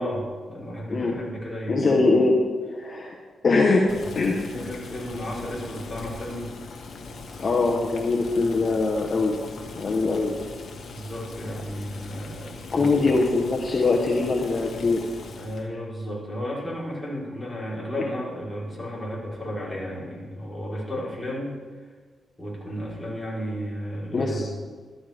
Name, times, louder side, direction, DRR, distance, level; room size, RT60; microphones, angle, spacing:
voice 1, 0.0-2.2 2.8-2.9 4.2-6.5 10.9-13.2 15.4-21.5 22.4-24.4, equal, 10° left, -7 dB, 4.0 m, -33 dB
voice 2, 1.7-2.4 2.7-3.2 3.4-3.9 4.1-4.4 7.4-9.4 9.8-10.3 12.7-15.0 24.1-24.4, left 3 dB, 40° left, -1 dB, 1.1 m, -22 dB
Boiling, 3.9-15.7, left 3 dB, 60° left, 1.3 m, -40 dB
13.0 x 12.0 x 3.5 m, 1.5 s
wide cardioid pair, 125°, 0 cm